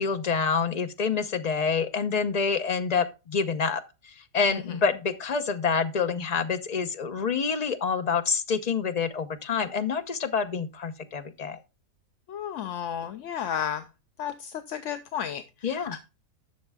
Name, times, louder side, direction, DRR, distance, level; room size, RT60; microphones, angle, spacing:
voice 1, 0.0-11.6 15.6-16.0, left 5 dB, 35° left, 0.7 m, -27 dB
voice 2, 12.3-13.9 14.2-16.0, left 9 dB, 60° left, 0.9 m, -33 dB
11.5 x 6.5 x 3.6 m
omnidirectional pair, 1.7 m